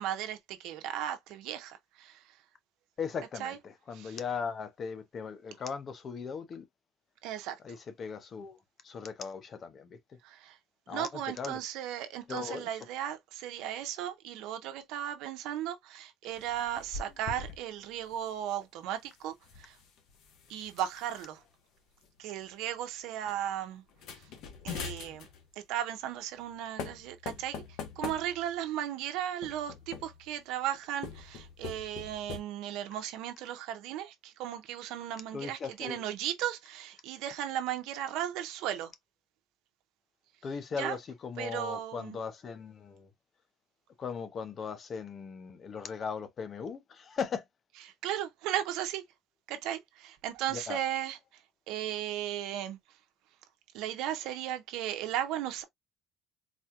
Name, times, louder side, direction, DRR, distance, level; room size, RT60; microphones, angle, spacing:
voice 1, 0.0-2.2 3.4-3.6 4.0-4.2 7.2-7.6 10.2-10.5 10.9-19.7 20.5-21.4 22.2-23.8 24.6-25.3 25.7-27.6 28.0-38.9 40.8-40.9 41.4-42.2 48.0-49.0 49.5-51.2 51.7-52.8 53.7-55.6, right 11 dB, 85° right, 0.8 m, -36 dB
voice 2, 3.0-6.7 7.6-8.6 8.8-10.0 10.9-11.6 12.3-12.9 35.3-36.1 40.4-43.1 44.0-47.4 50.5-50.8, left 6 dB, 40° left, 0.7 m, -38 dB
sound 1, 16.3-17.6 17.9-18.2 19.3-21.3 22.0-22.1 22.4-22.7 23.2-23.4 23.9-25.5 26.4-26.5 26.8-28.7 29.4-30.3 30.9-32.4, left 6 dB, 75° left, 1.1 m, -43 dB
4.1 x 2.3 x 2.9 m
cardioid pair, 125°, 0 cm